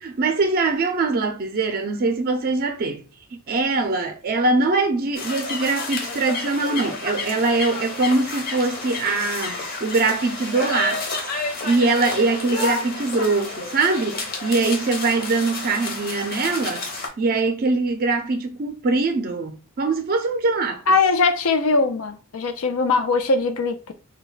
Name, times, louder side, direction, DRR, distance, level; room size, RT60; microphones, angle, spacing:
voice 1, 0.0-3.0 3.5-11.0 11.6-16.9 17.2-20.8, right 3 dB, 45° right, 0.4 m, -22 dB
sound 1, 5.1-17.1, left 3 dB, 45° left, 0.7 m, -30 dB
voice 2, 20.9-23.9, left 3 dB, 85° left, 0.5 m, -20 dB
2.3 x 2.1 x 3.8 m
head